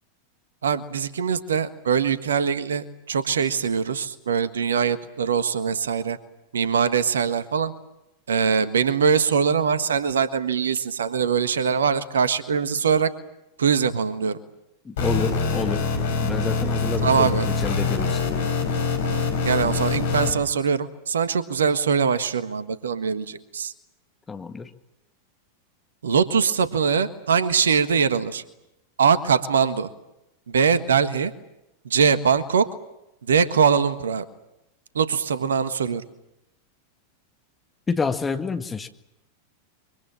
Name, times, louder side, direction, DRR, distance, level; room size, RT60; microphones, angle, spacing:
voice 1, 0.6-6.2 6.5-7.7 8.3-13.1 13.6-14.4 17.0-17.5 19.0-23.7 26.0-28.4 29.0-29.9 30.5-31.3 31.8-32.7 33.3-34.2 34.9-36.0, right 6 dB, 65° right, 12 dB, 1.5 m, -22 dB
voice 2, 14.9-15.9 16.2-18.2 24.3-24.7 37.9-38.9, left 5 dB, 15° left, 6 dB, 1.8 m, -28 dB
sound 1, 15.0-20.3, left 4 dB, 60° left, 4.9 m, -24 dB
26.5 x 24.0 x 7.6 m, 0.88 s
figure-of-eight pair, 90°, 0 cm